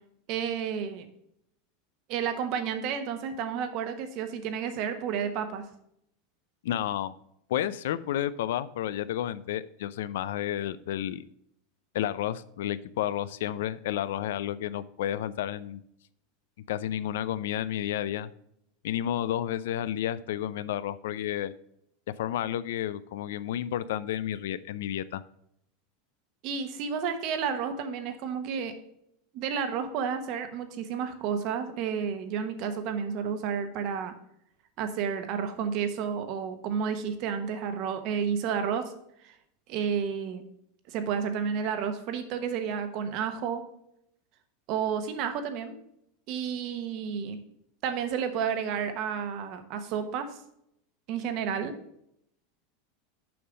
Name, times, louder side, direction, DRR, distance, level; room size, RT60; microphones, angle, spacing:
voice 1, 0.3-1.1 2.1-5.6 26.4-28.8 29.3-34.1 34.8-38.9 39.2-39.3 39.7-40.4 40.9-43.6 44.7-45.8 46.3-47.4 47.8-50.4 51.1-51.8, right 7 dB, 45° right, 8 dB, 1.0 m, -31 dB
voice 2, 6.6-7.1 7.5-11.2 11.9-15.8 16.7-18.3 18.8-21.5 22.2-25.2, left 11 dB, 85° left, 16 dB, 0.4 m, -31 dB
6.9 x 5.6 x 5.1 m, 0.74 s
supercardioid pair, 155°, 0 cm